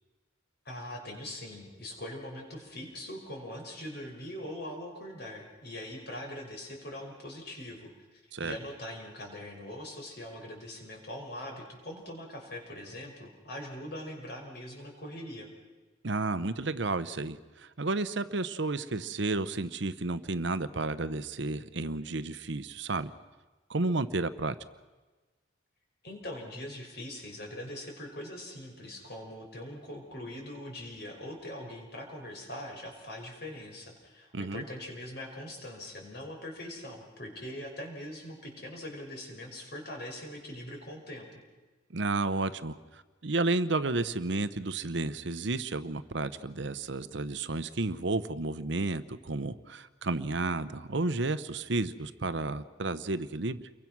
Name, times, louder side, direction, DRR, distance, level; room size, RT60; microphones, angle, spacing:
voice 1, 0.7-15.5 26.0-41.4, left 1 dB, 55° left, 2 dB, 5.5 m, -42 dB
voice 2, 16.0-23.1 23.7-24.6 34.3-34.6 41.9-53.6, right 3 dB, 65° right, 13 dB, 0.9 m, -32 dB
29.0 x 23.0 x 6.2 m, 1.3 s
head